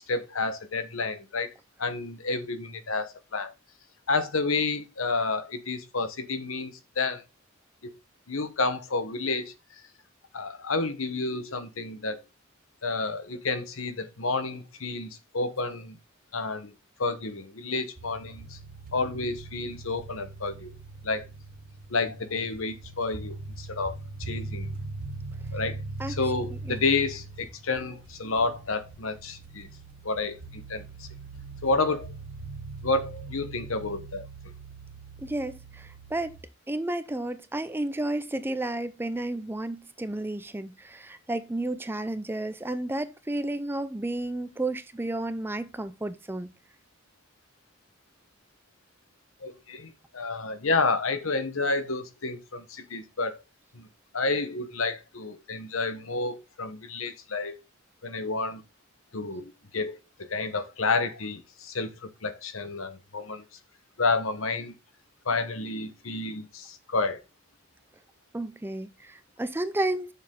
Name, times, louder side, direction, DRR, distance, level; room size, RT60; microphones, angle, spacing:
voice 1, 0.1-1.5 1.8-3.5 4.1-7.2 7.8-7.9 8.3-9.5 10.3-12.2 12.8-16.0 16.3-16.7 17.0-18.6 18.9-20.7 21.0-21.3 21.9-23.9 24.2-24.7 25.5-25.8 26.1-29.7 30.0-31.1 31.6-32.1 32.8-34.2 49.4-53.4 53.7-53.9 54.1-57.5 58.0-58.6 59.1-63.4 64.0-64.7 65.2-67.2, left 3 dB, 80° left, 1.1 m, -30 dB
sound 1, 18.0-36.4, right 3 dB, 45° right, 1.6 m, -41 dB
voice 2, 26.5-26.8 35.2-36.4 36.7-46.5 68.3-70.1, right 1 dB, 10° right, 0.5 m, -32 dB
6.9 x 6.9 x 3.7 m
head